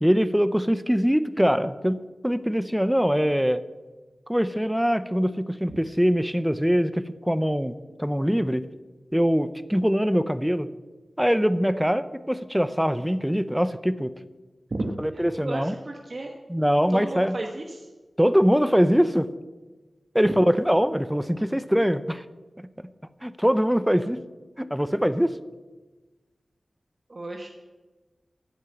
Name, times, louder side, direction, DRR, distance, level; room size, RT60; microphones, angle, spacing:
voice 1, 0.0-3.6 4.3-8.6 9.1-10.7 11.2-14.1 15.0-15.7 16.5-17.3 18.2-19.3 20.1-22.2 22.6-22.9 23.2-24.2 24.6-25.3, equal, 5° right, 14 dB, 0.7 m, -23 dB
voice 2, 14.7-16.3 16.9-17.9 20.2-20.4 27.1-27.5, right 2 dB, 45° right, 2 dB, 1.4 m, -33 dB
14.0 x 9.2 x 7.9 m, 1.2 s
wide cardioid pair, 90°, 0 cm